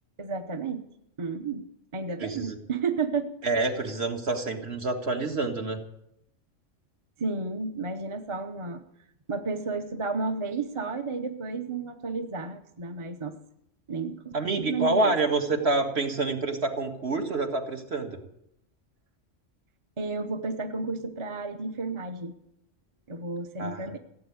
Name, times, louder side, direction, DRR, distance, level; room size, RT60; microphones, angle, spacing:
voice 1, 0.2-0.8 1.2-1.7 1.9-3.3 7.2-8.8 9.3-13.3 13.9-15.1 20.0-22.3 23.1-24.0, right 4 dB, 25° right, 7 dB, 0.9 m, -32 dB
voice 2, 2.2-2.6 3.4-5.8 14.3-18.2 23.6-23.9, right 2 dB, 55° right, 4 dB, 2.0 m, -27 dB
16.0 x 8.3 x 9.4 m, 0.77 s
omnidirectional pair, 1.3 m